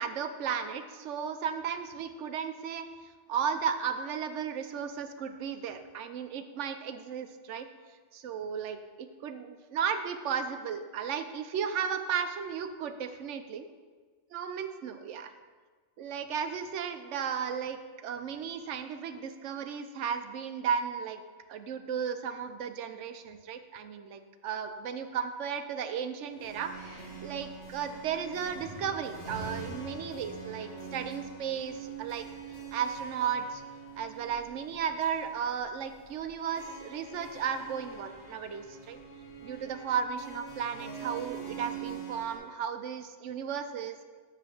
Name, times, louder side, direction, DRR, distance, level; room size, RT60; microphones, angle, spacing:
voice 1, 0.0-7.7 8.1-13.6 14.3-15.3 16.0-21.2 21.5-33.6 34.0-39.0 39.4-44.0, right 7 dB, 80° right, 8 dB, 1.0 m, -35 dB
sound 1, 26.2-42.4, right 5 dB, 75° left, 2.6 m, -44 dB
7.0 x 5.8 x 6.0 m, 1.5 s
omnidirectional pair, 1.2 m